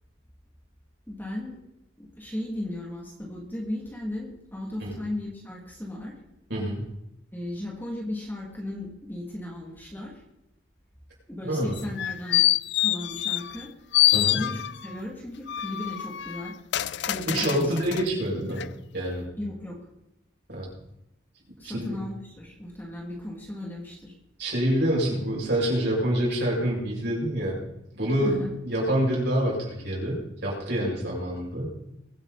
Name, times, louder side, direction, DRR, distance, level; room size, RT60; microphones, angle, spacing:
voice 1, 1.1-1.6 2.0-6.1 7.3-10.1 11.3-12.5 12.8-13.7 14.1-16.5 17.1-17.7 18.1-18.2 19.4-19.8 21.6-24.1 28.2-28.5, left 1 dB, 10° left, -3 dB, 2.7 m, -36 dB
voice 2, 6.5-6.8 11.4-11.8 14.1-14.4 17.3-18.6 18.9-19.2 20.5-20.7 21.6-21.9 24.4-27.6 27.9-28.4 28.6-31.7, right 1 dB, 60° right, -4 dB, 7.0 m, -26 dB
sound 1, 11.8-13.6 13.9-14.9 15.5-18.1 18.6-18.7, left 15 dB, 60° left, 0.4 m, -25 dB
22.5 x 9.7 x 4.2 m, 0.89 s
head